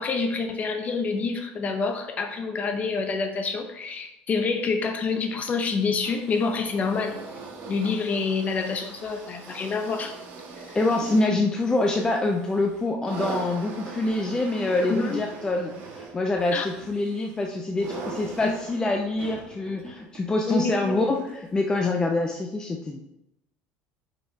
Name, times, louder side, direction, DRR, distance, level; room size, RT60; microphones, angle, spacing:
voice 1, 0.0-7.2 7.7-10.1 10.6-10.7 14.9-15.2 16.5-16.7 18.4-18.5 20.5-21.1, left 4 dB, 35° left, 5 dB, 1.0 m, -27 dB
sound 1, 6.0-21.5 22.3-22.4, right 4 dB, 65° right, 1.8 m, -41 dB
voice 2, 10.7-23.0, left 2 dB, 15° left, 1 dB, 0.6 m, -25 dB
8.9 x 5.3 x 2.9 m, 0.87 s
cardioid pair, 120°, 4 cm